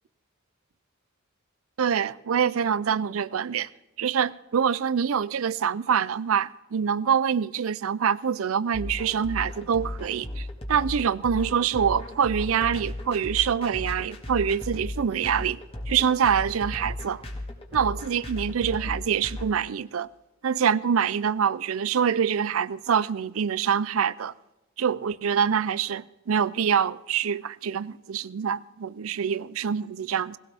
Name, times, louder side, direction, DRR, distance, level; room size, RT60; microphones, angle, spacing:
voice 1, 1.8-3.7 4.0-15.6 15.9-17.2 17.7-20.1 20.4-24.3 24.8-30.4, right 7 dB, 85° right, 0.5 m, -25 dB
sound 1, 8.7-19.4, left 1 dB, 30° left, 1.8 m, -35 dB
18.5 x 17.0 x 3.5 m
head